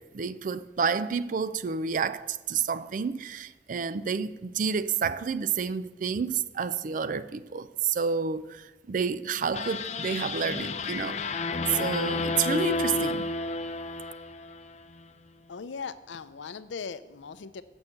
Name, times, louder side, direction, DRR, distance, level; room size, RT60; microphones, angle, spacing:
voice 1, 0.0-11.2 11.7-13.3, right 6 dB, 45° right, 0.4 m, -29 dB
sound 1, 9.5-14.8, left 3 dB, 40° left, 0.4 m, -31 dB
voice 2, 15.5-17.6, left 5 dB, 90° left, 0.5 m, -39 dB
7.1 x 6.3 x 7.7 m
head